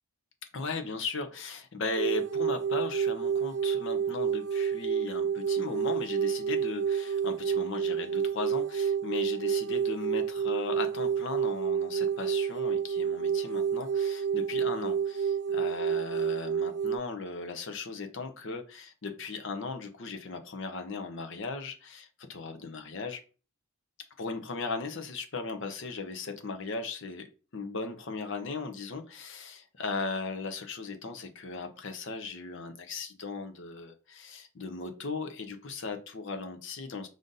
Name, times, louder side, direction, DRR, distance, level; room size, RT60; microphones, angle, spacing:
voice 1, 0.5-23.2 24.2-27.2 27.5-37.1, left 4 dB, 55° left, 7 dB, 0.7 m, -37 dB
sound 1, 2.0-17.0, right 7 dB, 55° right, 0.6 m, -29 dB
4.9 x 2.6 x 3.9 m, 0.35 s
head